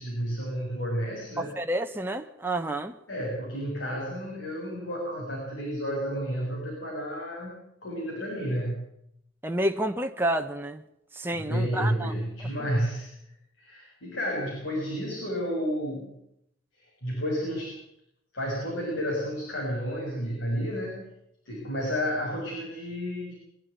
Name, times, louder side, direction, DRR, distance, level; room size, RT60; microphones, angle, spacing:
voice 1, 0.0-1.5 3.1-8.9 11.3-13.1 13.6-16.1 16.7-17.8 18.3-21.1 21.5-23.3, equal, 80° left, -2 dB, 6.8 m, -31 dB
voice 2, 1.4-2.9 9.4-10.8 11.1-12.1, right 1 dB, 10° right, 4 dB, 1.0 m, -29 dB
23.5 x 12.0 x 9.6 m, 0.79 s
head